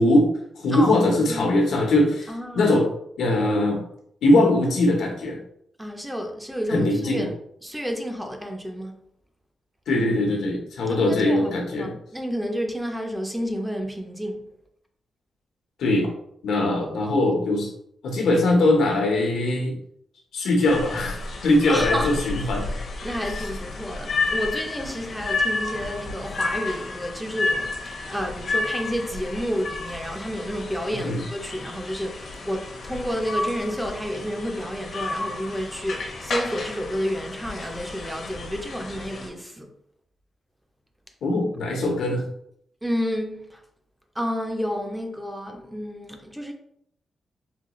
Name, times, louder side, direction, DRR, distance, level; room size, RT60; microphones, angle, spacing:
voice 1, 0.0-2.9 3.2-3.8 4.2-5.4 6.7-7.3 9.9-11.9 15.8-16.1 16.4-17.7 18.0-19.8 20.3-22.7 23.4-23.5 31.0-31.2 41.2-42.2, left 1 dB, 90° left, 0.9 m, -21 dB
voice 2, 0.7-1.6 2.3-2.7 5.8-7.3 7.6-8.9 10.9-11.5 11.8-14.4 21.7-22.1 23.0-39.7 42.8-43.6 44.2-46.5, equal, 5° right, 0.4 m, -30 dB
sound 1, 20.6-39.3, left 3 dB, 55° left, 0.7 m, -31 dB
3.7 x 2.3 x 3.0 m
wide cardioid pair, 150°, 0 cm